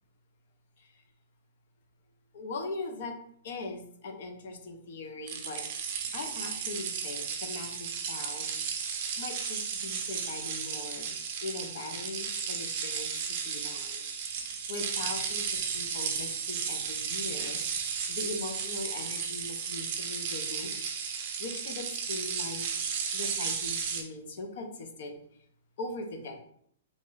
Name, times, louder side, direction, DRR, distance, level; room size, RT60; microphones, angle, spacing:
voice 1, 2.3-3.2 3.4-5.6 6.1-11.1 11.4-14.1 14.7-20.7 21.4-22.7 23.1-25.2 25.8-26.4, left 3 dB, 50° left, 5 dB, 0.6 m, -40 dB
sound 1, 5.3-24.0, right 6 dB, 35° right, 0.5 m, -34 dB
3.0 x 2.6 x 3.8 m, 0.65 s
hypercardioid pair, 175°, 0 cm